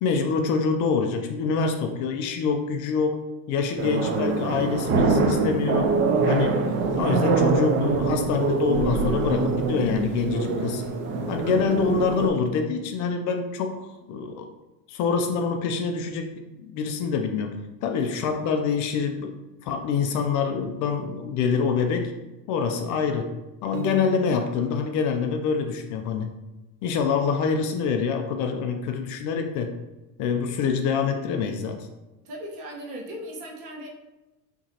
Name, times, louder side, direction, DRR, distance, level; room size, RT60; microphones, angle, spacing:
voice 1, 0.0-3.2 3.5-5.9 6.3-6.6 6.9-10.8 11.3-14.5 14.9-19.3 19.6-22.1 22.5-23.3 23.6-26.3 26.8-29.7 30.2-31.9, left 5 dB, 45° left, 5 dB, 0.4 m, -26 dB
sound 1, 3.8-12.3, right 3 dB, 30° right, 0.4 m, -24 dB
Piano, 23.7-24.7, right 2 dB, 80° right, 0.9 m, -36 dB
voice 2, 32.2-33.9, equal, 65° right, -1 dB, 1.3 m, -37 dB
5.8 x 3.0 x 2.8 m, 1.1 s
supercardioid pair, 135°, 45 cm